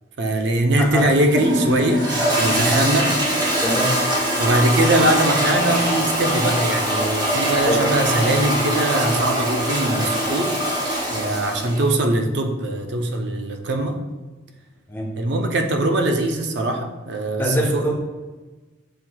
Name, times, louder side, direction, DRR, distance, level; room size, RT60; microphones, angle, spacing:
voice 1, 0.2-3.2 4.4-10.6 11.1-14.0 15.2-17.9, right 1 dB, 55° right, 4 dB, 0.5 m, -21 dB
Toilet flush, 0.8-11.9, equal, 20° right, 0.8 m, -22 dB
voice 2, 2.2-2.8 3.6-4.0 7.7-7.8 14.9-15.1 17.4-17.9, equal, 10° left, -2 dB, 0.7 m, -24 dB
7.5 x 2.8 x 2.2 m, 1.2 s
head